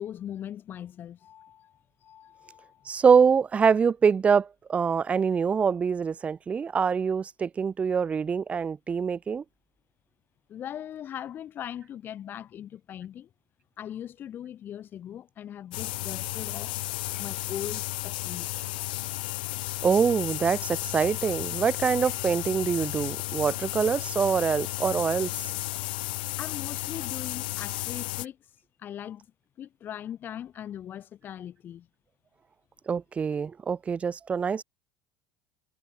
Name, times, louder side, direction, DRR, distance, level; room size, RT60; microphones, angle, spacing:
voice 1, 0.0-3.0 10.5-13.3 13.8-16.8 17.2-18.5 26.4-29.3 29.6-31.9, left 10 dB, 45° left, 4.7 m, -40 dB
voice 2, 2.9-9.4 19.8-25.3 32.9-34.6, right 6 dB, 25° right, 1.1 m, -24 dB
sound 1, 15.7-28.3, left 19 dB, 90° left, 2.0 m, -33 dB
supercardioid pair, 105°, 5 cm